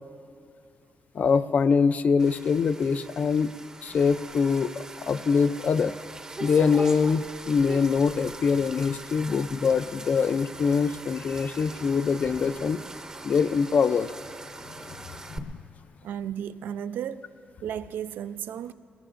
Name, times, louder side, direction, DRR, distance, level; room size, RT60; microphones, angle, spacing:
voice 1, 1.1-3.5 3.8-6.0 6.4-12.8 13.2-14.1 14.7-15.6, left 5 dB, 50° left, 0.5 m, -24 dB
sound 1, 2.2-15.4, right 2 dB, 20° right, 0.7 m, -41 dB
voice 2, 16.0-17.3 17.6-18.7, right 9 dB, 90° right, 0.4 m, -34 dB
22.5 x 20.5 x 2.5 m
cardioid pair, 120°, 3 cm